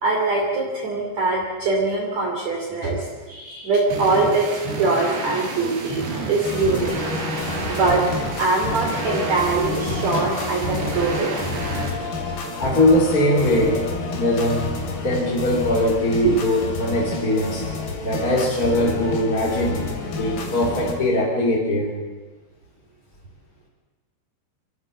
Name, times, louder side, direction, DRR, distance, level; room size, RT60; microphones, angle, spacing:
voice 1, 0.0-4.5 4.8-7.0 7.7-8.0 8.4-11.3 12.0-12.4 13.6-13.7 16.2-16.3, right 3 dB, 45° right, -2 dB, 3.6 m, -23 dB
sound 1, 3.9-11.9, right 3 dB, 70° right, 5.3 m, -30 dB
sound 2, 6.4-20.9, left 3 dB, 55° left, 4.6 m, -30 dB
voice 2, 12.6-13.8 14.2-14.6 15.0-17.6 18.0-19.8 20.2-21.9, left 1 dB, 20° left, -4 dB, 3.6 m, -21 dB
26.0 x 14.5 x 7.6 m, 1.2 s
omnidirectional pair, 5.2 m